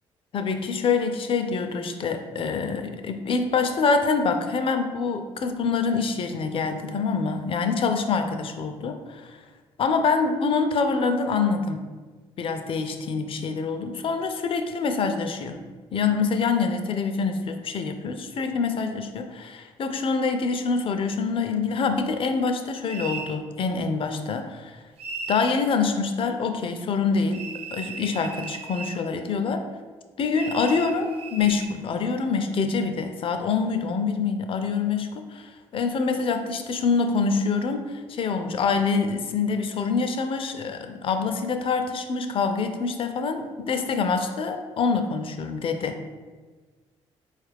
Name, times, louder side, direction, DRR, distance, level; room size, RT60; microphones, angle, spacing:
voice 1, 0.3-9.4 9.8-11.8 12.4-15.6 15.9-24.8 25.3-27.4 27.7-29.6 30.2-46.0, left 5 dB, 50° left, 7 dB, 0.4 m, -25 dB
sound 1, 22.9-23.3 25.0-25.6 27.3-29.0 30.3-31.7, right 4 dB, 55° right, 0.7 m, -36 dB
4.0 x 2.4 x 3.3 m, 1.4 s
supercardioid pair, 65°, 12 cm